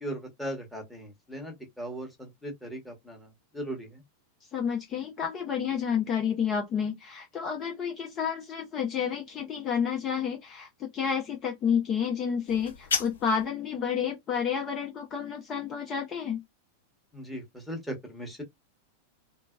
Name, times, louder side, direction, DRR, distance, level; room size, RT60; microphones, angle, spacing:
voice 1, 0.0-4.0 17.1-18.4, right 1 dB, ahead, 1.2 m, -38 dB
voice 2, 4.5-16.4, left 7 dB, 30° left, 0.6 m, -30 dB
sound 1, 12.5-13.5, left 6 dB, 65° left, 0.7 m, -32 dB
3.2 x 2.0 x 2.3 m
figure-of-eight pair, 90°, 0 cm